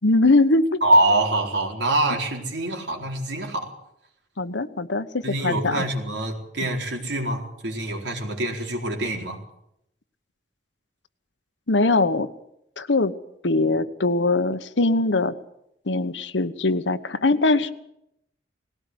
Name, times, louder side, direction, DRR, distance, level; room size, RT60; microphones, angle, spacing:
voice 1, 0.0-0.8 4.4-5.8 11.7-12.3 12.8-13.1 13.4-15.4 15.9-17.7, left 2 dB, 90° left, 12 dB, 1.1 m, -21 dB
voice 2, 0.8-3.7 5.2-9.4, right 1 dB, 80° right, 1 dB, 4.2 m, -24 dB
19.5 x 17.0 x 8.0 m, 0.79 s
head